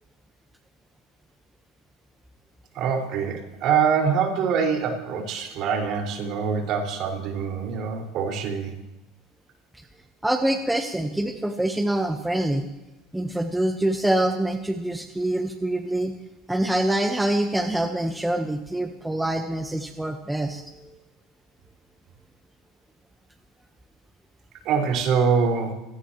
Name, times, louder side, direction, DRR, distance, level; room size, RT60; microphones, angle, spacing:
voice 1, 2.8-8.7 24.7-25.7, right 6 dB, 55° right, 1 dB, 5.2 m, -24 dB
voice 2, 10.2-12.7 13.1-16.1 16.5-20.9, right 1 dB, 5° right, 5 dB, 1.2 m, -25 dB
26.0 x 17.5 x 3.1 m, 1.0 s
supercardioid pair, 100°, 0 cm